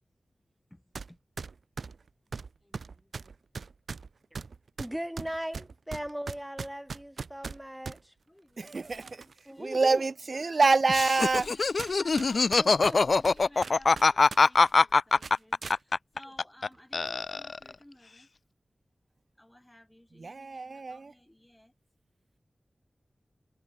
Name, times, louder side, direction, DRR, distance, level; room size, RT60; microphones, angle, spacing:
sound 1, 0.9-1.1 1.4-8.0 8.6-9.4 9.8-9.9 10.6-10.7 11.3-11.5 11.8-14.4 14.7-14.8 15.2-15.8, right 4 dB, 80° right, 0.5 m, -40 dB
voice 1, 2.6-3.3 8.3-9.8 10.4-10.6 11.5-18.3 19.4-21.7, left 1 dB, 10° left, 4.1 m, -56 dB
voice 2, 4.8-8.1 9.5-10.0 12.3-13.2, equal, 5° right, 0.9 m, -39 dB
voice 3, 8.6-9.2 9.6-11.5 20.1-21.1, right 3 dB, 55° right, 1.0 m, -26 dB
Laughter, 10.9-16.7 16.9-17.7, left 4 dB, 65° left, 0.3 m, -23 dB
wide cardioid pair, 85°, 0 cm